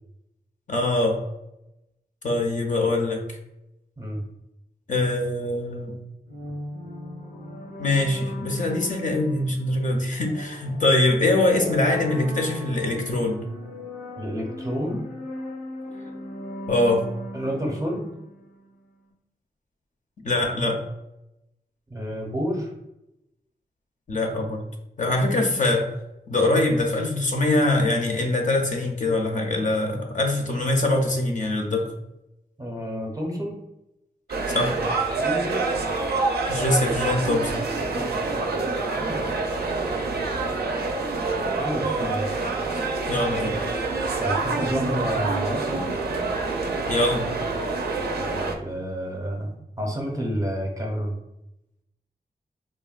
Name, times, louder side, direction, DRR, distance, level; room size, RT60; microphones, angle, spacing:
voice 1, 0.7-1.2 2.2-3.2 4.9-6.0 7.8-13.5 16.7-17.1 20.2-20.8 24.1-24.6 25.0-25.9 26.3-31.9 34.5-34.8 36.5-37.6 43.1-43.7 46.9-47.3, left 2 dB, 50° left, 2 dB, 0.5 m, -23 dB
sound 1, 6.3-18.8, equal, 80° left, 0.8 m, -38 dB
voice 2, 14.2-15.0 17.3-18.1 21.9-22.7 32.6-33.6 35.2-35.7 37.8-39.3 41.6-42.4 44.2-45.9 48.2-51.2, equal, 20° right, 0 dB, 0.6 m, -30 dB
sound 2, 34.3-48.5, right 3 dB, 75° right, 0.4 m, -27 dB
3.2 x 2.2 x 2.3 m, 0.89 s
wide cardioid pair, 105°, 17 cm